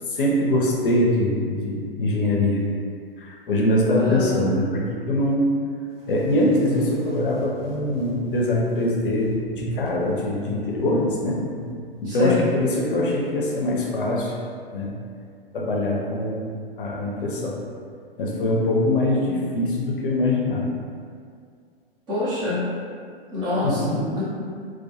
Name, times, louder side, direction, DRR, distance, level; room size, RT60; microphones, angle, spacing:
voice 1, 0.1-2.6 3.2-5.5 6.1-9.3 9.7-11.4 12.0-14.3 14.7-14.9 15.5-16.5 16.8-17.6 18.2-20.7 23.6-24.0, left 1 dB, 60° left, -3 dB, 0.5 m, -23 dB
voice 2, 3.9-4.4 12.1-12.5 18.7-18.8 22.1-22.6 23.3-24.2, left 2 dB, 15° right, -10 dB, 0.5 m, -26 dB
sound 1, 6.0-12.8, equal, 70° right, 1.0 m, -36 dB
2.2 x 2.1 x 2.7 m, 2.2 s
figure-of-eight pair, 110°, 30 cm